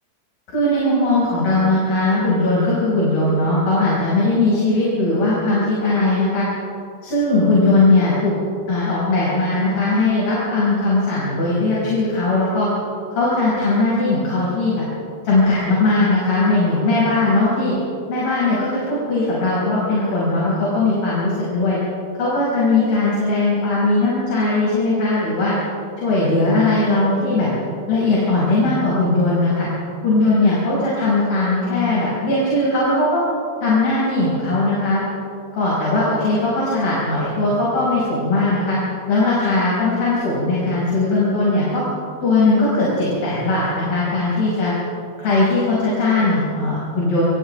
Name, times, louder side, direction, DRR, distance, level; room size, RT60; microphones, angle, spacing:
voice 1, 0.5-6.5 7.0-8.3 8.7-12.7 13.1-14.7 15.2-17.7 18.1-21.8 22.1-25.6 26.0-27.5 27.9-29.7 30.0-33.2 33.6-35.0 35.5-38.8 39.1-41.8 42.2-44.7 45.2-47.2, left 2 dB, 65° left, -7 dB, 7.2 m, -19 dB
29.5 x 27.0 x 3.4 m, 2.6 s
omnidirectional pair, 4.6 m